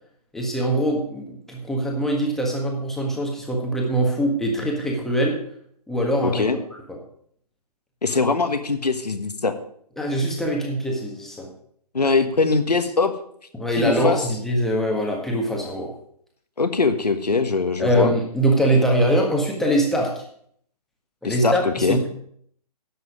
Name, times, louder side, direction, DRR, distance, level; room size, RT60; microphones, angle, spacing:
voice 1, 0.3-5.4 5.9-6.4 6.9-7.0 10.0-11.5 13.5-15.9 17.8-20.2 21.2-22.1, right 1 dB, ahead, -1 dB, 1.6 m, -23 dB
voice 2, 6.2-6.6 8.0-9.5 11.9-13.1 13.8-14.2 16.6-18.1 21.2-22.0, left 4 dB, 80° left, 8 dB, 1.5 m, -22 dB
11.0 x 7.9 x 5.0 m, 0.66 s
figure-of-eight pair, 140°, 20 cm